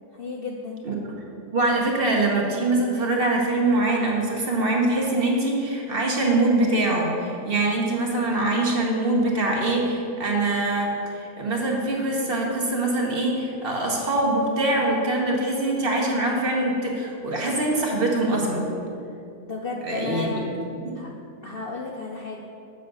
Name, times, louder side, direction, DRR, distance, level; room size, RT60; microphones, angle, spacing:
voice 1, 0.1-0.8 19.4-20.5 20.9-21.1 21.4-22.4, left 3 dB, 55° left, -1 dB, 0.6 m, -33 dB
voice 2, 1.5-18.7 19.8-20.4 20.8-21.0, right 2 dB, 45° right, -1 dB, 1.1 m, -23 dB
6.8 x 4.9 x 6.5 m, 2.7 s
omnidirectional pair, 1.5 m